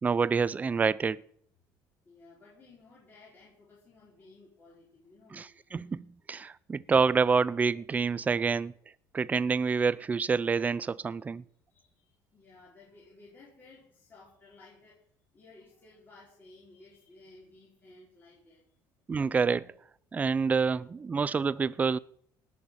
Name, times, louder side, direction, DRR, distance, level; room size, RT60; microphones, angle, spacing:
voice 1, 0.0-1.2 5.3-8.7 9.1-11.4 19.1-19.7 20.1-22.0, right 5 dB, 20° right, 0.4 m, -27 dB
voice 2, 2.0-5.5 6.4-6.5 11.7-15.0 15.3-18.8, left 3 dB, 25° left, 4.8 m, -56 dB
18.5 x 6.4 x 7.2 m
cardioid pair, 135°, 8 cm